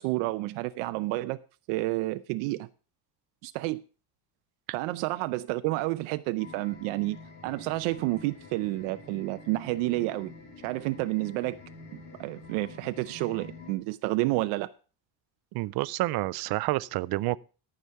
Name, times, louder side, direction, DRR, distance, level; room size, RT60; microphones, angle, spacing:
voice 1, 0.0-1.4 1.7-2.7 3.4-3.8 4.7-7.2 7.4-10.3 10.6-11.6 11.9-14.7, right 19 dB, 90° right, 0.7 m, -30 dB
sound 1, 6.4-13.8, left 3 dB, 80° left, 2.5 m, -48 dB
sound 2, 7.6-13.3, equal, 55° left, 6.9 m, -55 dB
voice 2, 15.5-17.4, right 19 dB, 50° right, 0.5 m, -29 dB
14.0 x 5.0 x 5.5 m
cardioid pair, 150°, 49 cm